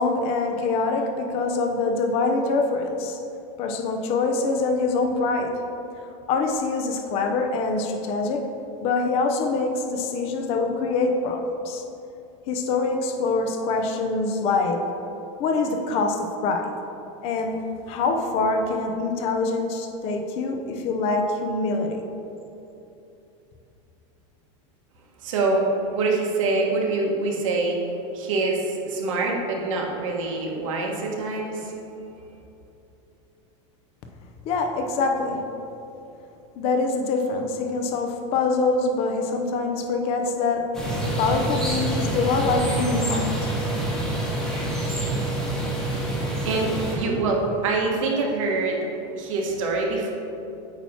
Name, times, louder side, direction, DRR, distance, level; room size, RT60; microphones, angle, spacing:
voice 1, 0.0-3.2 3.6-5.5 6.3-8.5 8.8-11.8 12.5-14.8 15.4-16.7 17.2-17.6 17.9-22.1 34.5-35.4 36.6-40.7 41.2-43.5, left 3 dB, 40° left, 4 dB, 0.7 m, -24 dB
voice 2, 25.2-27.8 28.1-31.7 46.4-48.8 49.2-50.1, right 3 dB, 80° right, 0 dB, 1.3 m, -25 dB
sound 1, 40.7-47.0, right 1 dB, ahead, 1.2 m, -26 dB
8.7 x 3.0 x 5.6 m, 2.9 s
supercardioid pair, 160°, 16 cm